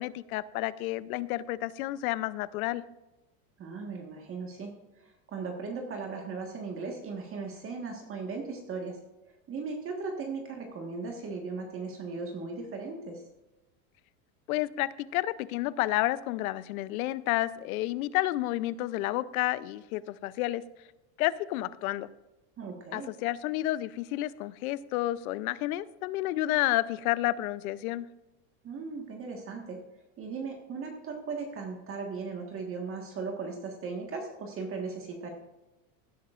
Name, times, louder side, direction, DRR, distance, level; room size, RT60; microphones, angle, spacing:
voice 1, 0.0-2.8 14.5-20.6 21.2-22.1 22.9-28.1, left 16 dB, 90° left, 17 dB, 0.7 m, -30 dB
voice 2, 3.6-9.0 9.2-13.2 22.6-23.1 28.6-29.8 30.2-35.3, right 4 dB, 30° right, 1 dB, 1.5 m, -37 dB
16.5 x 9.4 x 2.5 m, 1.0 s
supercardioid pair, 140°, 42 cm